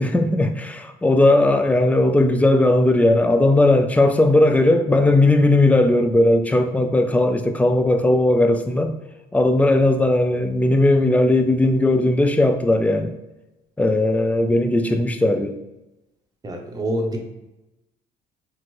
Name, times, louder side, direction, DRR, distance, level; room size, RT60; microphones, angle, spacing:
voice 1, 0.0-8.9 9.3-13.1 13.8-15.6, left 2 dB, 10° left, 6 dB, 0.4 m, -17 dB
voice 2, 16.4-17.2, equal, 20° right, 2 dB, 0.7 m, -26 dB
4.3 x 2.5 x 3.0 m, 0.99 s
cardioid pair, 110°, 17 cm